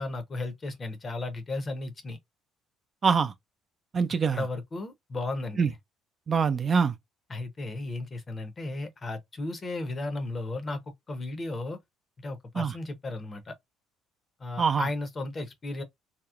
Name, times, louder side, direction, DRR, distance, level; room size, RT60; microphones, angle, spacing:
voice 1, 0.0-2.2 4.3-5.8 7.3-11.8 12.2-13.5 14.4-15.8, left 2 dB, 30° left, 0.7 m, -35 dB
voice 2, 3.0-3.3 3.9-4.4 5.6-5.7 6.3-6.9 12.6-12.7 14.6-14.9, right 5 dB, 35° right, 0.3 m, -24 dB
2.8 x 2.0 x 2.3 m
cardioid pair, 105°, 0 cm